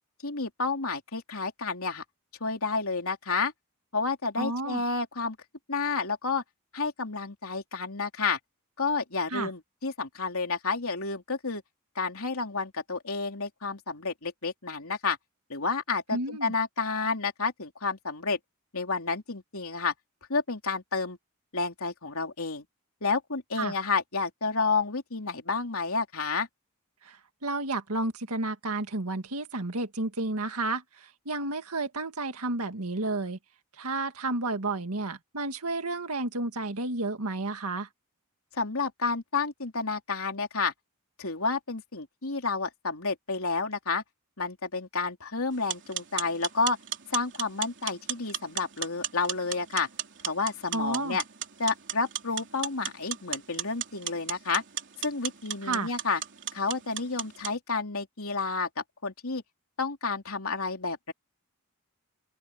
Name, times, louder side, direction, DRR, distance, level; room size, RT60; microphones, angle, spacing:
voice 1, 0.2-2.0 2.4-3.5 3.9-5.4 5.7-6.4 6.7-8.4 8.8-11.6 12.0-15.2 15.5-18.4 18.7-19.9 20.3-21.2 21.5-22.7 23.0-26.5 38.5-40.7 41.2-44.0 44.4-46.8 47.1-49.9 50.3-51.2 51.6-54.6 55.0-56.2 56.5-59.4 59.8-61.1, left 4 dB, 70° left, 3.6 m, -30 dB
voice 2, 4.4-4.8 9.3-9.5 16.1-16.5 23.6-23.7 27.0-27.2 27.4-33.4 33.8-37.9 50.7-51.2 55.6-55.9, right 2 dB, 80° right, 1.9 m, -31 dB
sound 1, 45.5-57.5, right 10 dB, 55° right, 3.4 m, -37 dB
open air
head